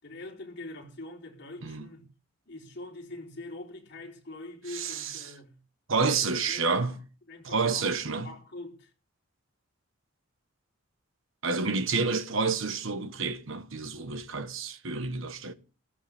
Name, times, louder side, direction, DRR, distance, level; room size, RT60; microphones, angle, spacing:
voice 1, 0.0-2.1 2.5-5.6 6.2-7.0 7.3-8.9, left 2 dB, 50° left, 3.8 m, -44 dB
voice 2, 4.7-5.2 5.9-6.9 7.4-8.3 11.4-15.5, right 4 dB, 65° right, 1.2 m, -29 dB
16.5 x 14.5 x 3.5 m
head